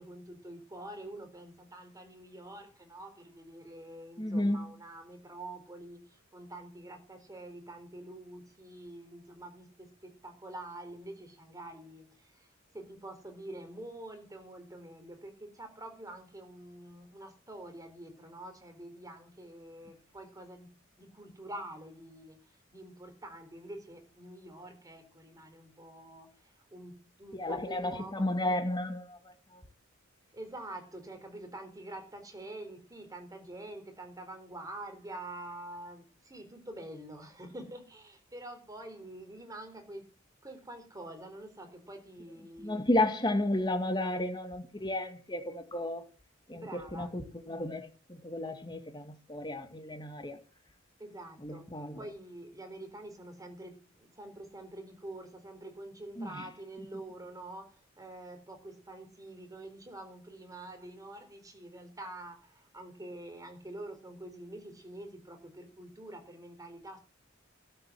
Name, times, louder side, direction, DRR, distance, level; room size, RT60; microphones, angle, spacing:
voice 1, 0.0-12.5 12.7-28.3 30.3-40.1 40.4-42.8 46.5-47.1 51.0-51.7 52.0-67.0, right 1 dB, 20° right, 3.8 m, -46 dB
voice 2, 4.2-4.7 27.3-29.6 42.6-46.0 46.5-50.4 51.4-52.0 56.2-56.4, left 1 dB, 20° left, 2.0 m, -33 dB
12.5 x 7.7 x 7.6 m
head